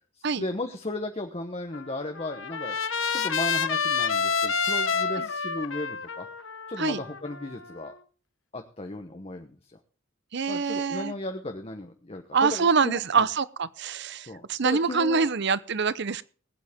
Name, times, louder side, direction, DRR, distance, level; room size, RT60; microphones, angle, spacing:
voice 1, 0.1-6.3 6.7-7.9 8.5-9.8 10.5-13.2 14.3-15.3, left 2 dB, 30° left, 1.1 m, -35 dB
Trumpet, 1.7-7.9, left 5 dB, 70° left, 1.1 m, -29 dB
voice 2, 10.3-11.1 12.3-16.2, right 5 dB, 60° right, 0.7 m, -25 dB
20.5 x 9.2 x 3.6 m
head